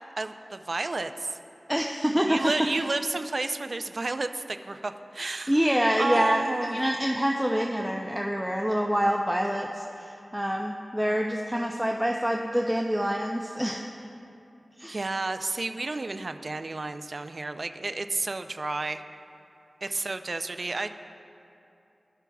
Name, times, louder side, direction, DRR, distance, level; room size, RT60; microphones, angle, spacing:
voice 1, 0.2-1.4 2.3-5.6 6.0-6.8 14.9-19.0 19.8-20.9, right 3 dB, 60° right, 9 dB, 0.4 m, -31 dB
voice 2, 1.7-2.5 5.5-6.4 6.7-13.9 14.8-15.0, equal, 5° right, 1 dB, 0.5 m, -26 dB
16.5 x 5.9 x 2.3 m, 2.8 s
cardioid pair, 40°, 0 cm